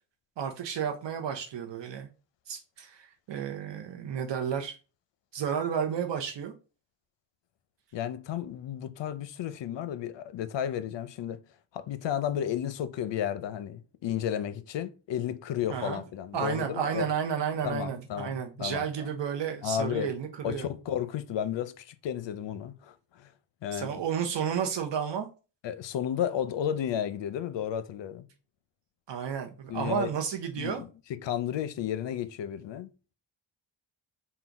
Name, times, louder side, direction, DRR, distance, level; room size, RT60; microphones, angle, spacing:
voice 1, 0.4-2.1 2.5-4.7 5.3-6.5 15.7-16.0 16.3-20.7 23.7-25.3 29.1-30.8, right 7 dB, 65° right, 0.7 m, -32 dB
voice 2, 7.9-11.4 11.7-17.1 17.6-18.9 19.6-20.1 20.4-23.3 23.6-24.0 25.6-28.3 29.7-30.1 30.6-32.9, left 9 dB, 65° left, 0.6 m, -33 dB
3.8 x 2.3 x 4.5 m
wide cardioid pair, 110°, 46 cm